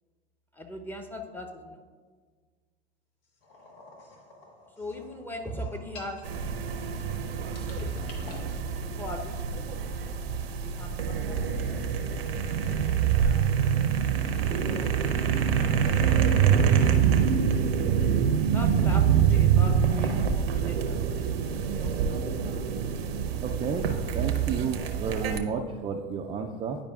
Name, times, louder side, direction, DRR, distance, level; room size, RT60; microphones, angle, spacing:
voice 1, 0.5-1.8 4.8-6.2 6.5-6.8 7.7-8.0 9.0-9.7 10.6-11.9 14.6-14.9 18.5-21.2 21.8-22.2, equal, 5° left, 3 dB, 0.8 m, -39 dB
sound 1, 3.4-7.2 7.6-8.5, left 2 dB, 75° left, 1.5 m, -49 dB
sound 2, 6.2-25.4, right 7 dB, 85° right, 0.7 m, -25 dB
voice 2, 23.4-23.9 24.1-26.8, right 6 dB, 20° right, 2 dB, 0.4 m, -31 dB
10.5 x 5.0 x 2.4 m, 1.5 s
hypercardioid pair, 95°, 29 cm